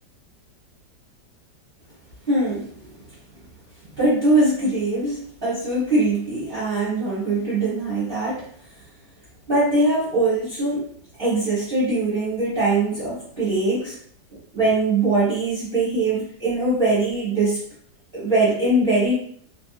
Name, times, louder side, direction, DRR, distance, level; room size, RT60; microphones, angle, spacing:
voice 1, 2.3-2.8 3.9-8.5 9.5-10.8 11.2-14.0 14.3-17.6 18.1-19.1, right 2 dB, 35° right, -10 dB, 1.1 m, -22 dB
2.9 x 2.7 x 2.3 m, 0.62 s
omnidirectional pair, 1.9 m